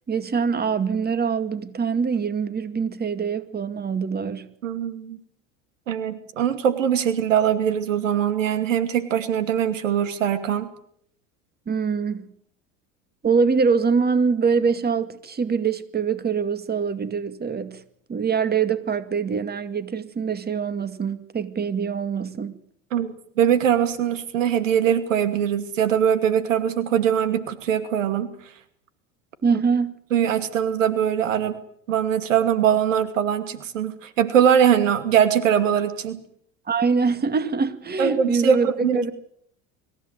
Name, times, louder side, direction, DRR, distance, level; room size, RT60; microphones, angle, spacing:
voice 1, 0.1-4.5 11.7-12.3 13.2-17.8 18.1-22.6 29.4-29.9 36.7-39.1, right 5 dB, 25° right, 2.3 m, -24 dB
voice 2, 4.6-5.2 5.9-10.7 22.9-28.5 29.5-29.6 30.1-31.6 31.9-36.2 38.0-39.0, right 9 dB, 90° right, 2.5 m, -22 dB
25.5 x 15.5 x 9.3 m
hypercardioid pair, 85°, 37 cm